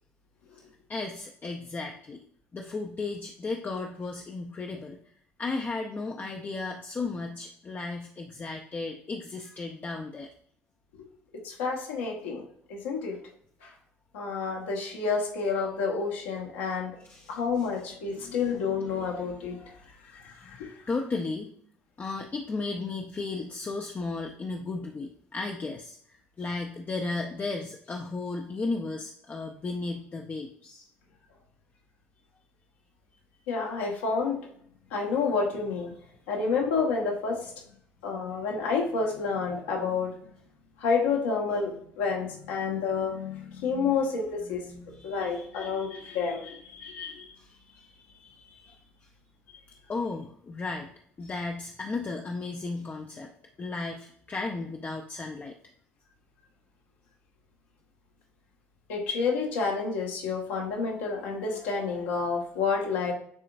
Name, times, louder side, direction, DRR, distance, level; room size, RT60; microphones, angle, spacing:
voice 1, 0.9-2.2 2.5-5.0 5.4-10.3 17.1-17.3 18.9-19.8 20.4-20.6 20.9-21.5 22.0-26.0 26.4-30.8 45.0-45.7 47.4-48.8 49.9-50.9 51.2-53.3 53.6-55.5, left 3 dB, 25° left, 2 dB, 0.6 m, -35 dB
voice 2, 11.4-12.4 12.7-13.2 13.6-13.7 14.1-16.9 17.3-19.6 20.2-20.7 33.5-34.4 34.9-35.9 36.3-37.5 38.0-40.1 40.8-47.3 58.9-63.1, left 5 dB, 70° left, -1 dB, 1.3 m, -29 dB
9.7 x 3.8 x 2.6 m, 0.65 s
figure-of-eight pair, 55°, 7 cm